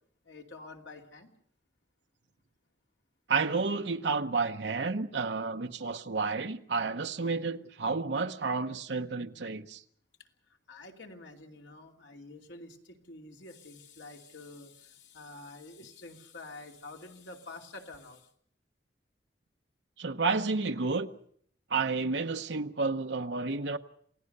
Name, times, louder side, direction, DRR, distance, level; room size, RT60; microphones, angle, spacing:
voice 1, 0.2-1.3 10.7-18.3, left 2 dB, 85° left, 2.8 m, -48 dB
voice 2, 3.3-9.8 20.0-21.1 21.7-23.8, right 4 dB, 70° right, 0.9 m, -31 dB
27.5 x 17.0 x 6.7 m
head